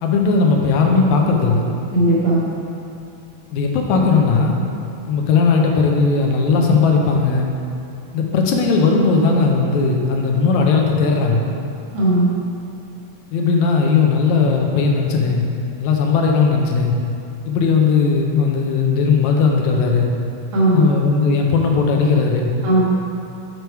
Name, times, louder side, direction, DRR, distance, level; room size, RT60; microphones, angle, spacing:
voice 1, 0.0-1.6 3.5-4.5 5.1-7.5 8.1-11.5 13.3-15.4 15.8-16.9 17.5-20.1 20.7-22.5, left 4 dB, 80° left, 1 dB, 2.0 m, -17 dB
voice 2, 1.9-2.4 11.9-12.3 20.5-20.9 22.6-22.8, right 1 dB, 85° right, -7 dB, 3.0 m, -16 dB
6.8 x 4.6 x 4.6 m, 2.8 s
omnidirectional pair, 3.3 m